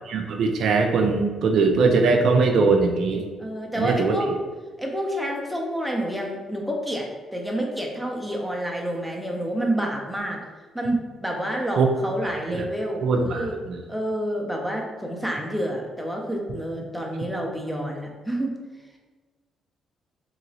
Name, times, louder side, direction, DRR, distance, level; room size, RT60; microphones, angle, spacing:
voice 1, 0.1-3.2 3.8-4.1 11.8-11.9 12.5-12.6 13.0-13.5, right 4 dB, 70° right, 3 dB, 0.3 m, -20 dB
voice 2, 3.4-4.3 4.8-10.4 10.7-13.6 13.9-18.5, right 1 dB, ahead, 0 dB, 0.6 m, -28 dB
3.0 x 2.8 x 2.7 m, 1.4 s
cardioid pair, 90°, 0 cm